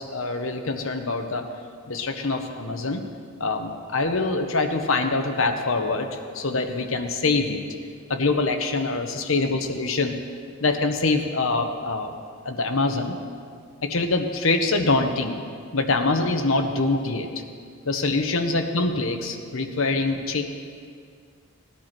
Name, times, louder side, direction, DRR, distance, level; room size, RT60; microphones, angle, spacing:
voice 1, 0.0-1.5 1.9-3.0 3.4-7.6 8.1-10.2 10.6-12.1 12.4-13.2 13.8-15.4 15.7-17.3 17.8-20.4, left 3 dB, 75° left, 5 dB, 1.2 m, -24 dB
18.5 x 10.5 x 4.5 m, 2.1 s
head